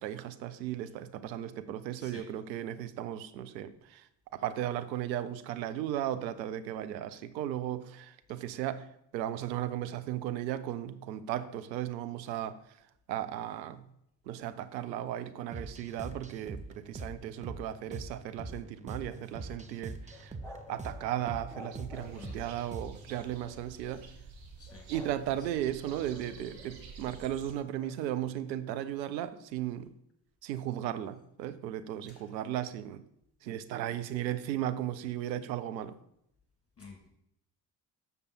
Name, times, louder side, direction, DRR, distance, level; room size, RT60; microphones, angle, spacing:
voice 1, 0.0-4.0 4.3-8.9 9.1-12.6 13.1-13.8 14.3-20.3 20.7-24.0 24.9-29.9 30.4-33.0 33.4-36.0, right 11 dB, 85° right, 12 dB, 0.6 m, -36 dB
sound 1, 15.5-23.2, right 3 dB, 15° right, 0.8 m, -43 dB
sound 2, 20.1-22.5 23.1-24.0 24.7-25.2 25.5-26.9 27.7-28.0, left 3 dB, 5° left, 2.4 m, -52 dB
sound 3, 21.9-27.5, right 5 dB, 60° right, 1.5 m, -50 dB
voice 2, 36.8-37.1, left 4 dB, 30° left, 1 dB, 2.0 m, -50 dB
6.7 x 6.7 x 4.3 m, 0.77 s
hypercardioid pair, 45°, 50 cm